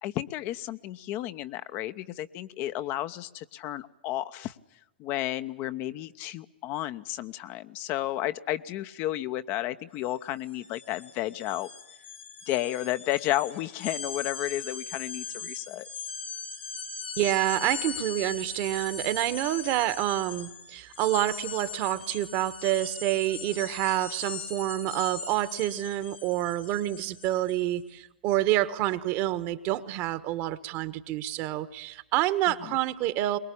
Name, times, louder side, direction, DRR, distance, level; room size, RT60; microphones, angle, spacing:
voice 1, 0.0-4.5 5.0-11.7 12.5-15.9 32.6-32.8, left 14 dB, 40° left, 11 dB, 0.9 m, -32 dB
sound 1, 10.0-10.1 10.4-27.7, left 6 dB, 90° left, 3.5 m, -40 dB
voice 2, 17.2-33.4, right 14 dB, 40° right, 14 dB, 1.4 m, -28 dB
23.0 x 20.0 x 8.5 m, 0.92 s
hypercardioid pair, 120°, 6 cm